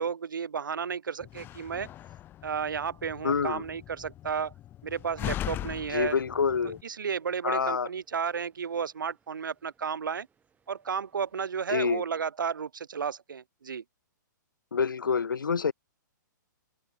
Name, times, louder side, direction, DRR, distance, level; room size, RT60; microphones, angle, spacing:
voice 1, 0.0-1.9 2.4-4.5 4.8-6.2 6.8-10.3 10.7-13.8, right 6 dB, 85° right, 0.4 m, -33 dB
Slam, 1.2-6.8, left 12 dB, 20° left, 0.5 m, -40 dB
voice 2, 3.2-3.6 5.9-6.8 7.4-7.9 11.7-12.0 14.7-15.7, left 6 dB, 85° left, 0.5 m, -27 dB
sound 1, 5.5-11.5, right 6 dB, 15° right, 6.7 m, -71 dB
open air
hypercardioid pair, 120°, 10 cm